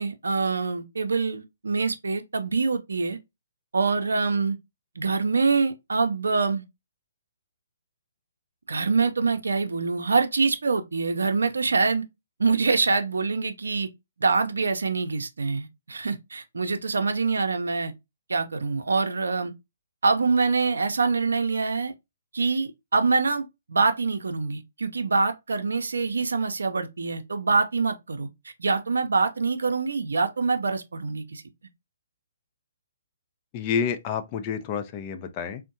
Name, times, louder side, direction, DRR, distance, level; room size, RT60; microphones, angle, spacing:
voice 1, 0.0-3.2 3.7-4.6 5.0-6.6 8.7-12.0 12.4-13.9 14.2-17.9 18.3-19.5 20.0-21.9 22.3-31.4, right 4 dB, 80° right, 0.6 m, -25 dB
voice 2, 33.5-35.6, left 7 dB, 30° left, 0.5 m, -29 dB
3.4 x 2.1 x 2.6 m
hypercardioid pair, 140°, 0 cm